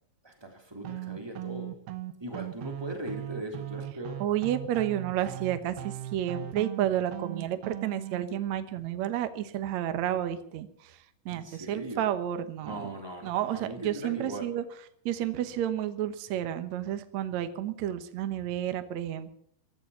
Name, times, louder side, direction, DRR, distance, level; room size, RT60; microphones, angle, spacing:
voice 1, 0.2-1.7 2.2-4.2 11.3-12.0 12.6-14.5, right 1 dB, 5° right, 2 dB, 2.7 m, -39 dB
sound 1, 0.8-8.3, right 14 dB, 85° right, 3.0 m, -39 dB
voice 2, 4.2-12.9 13.2-14.6 15.1-19.3, right 11 dB, 65° right, 10 dB, 1.9 m, -31 dB
15.5 x 13.0 x 7.2 m, 0.66 s
omnidirectional pair, 4.5 m